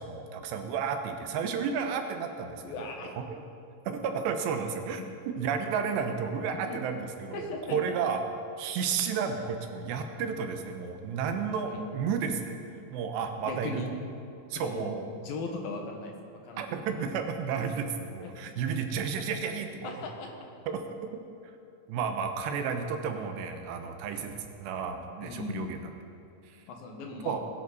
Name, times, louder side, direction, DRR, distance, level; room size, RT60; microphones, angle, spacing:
voice 1, 0.0-2.9 3.3-3.5 3.9-5.0 5.4-8.2 8.6-12.5 12.9-13.8 14.5-15.0 16.6-20.0 20.7-21.0 21.9-25.8 26.5-26.6 27.3-27.4, right 6 dB, 90° right, 5 dB, 3.2 m, -32 dB
voice 2, 2.6-3.1 6.7-6.8 7.3-7.8 11.7-11.8 13.4-13.9 14.5-16.7 18.2-18.8 19.8-20.3 25.2-25.8 26.7-27.4, left 3 dB, 65° left, 2 dB, 2.9 m, -38 dB
21.0 x 10.5 x 4.1 m, 2.6 s
omnidirectional pair, 4.8 m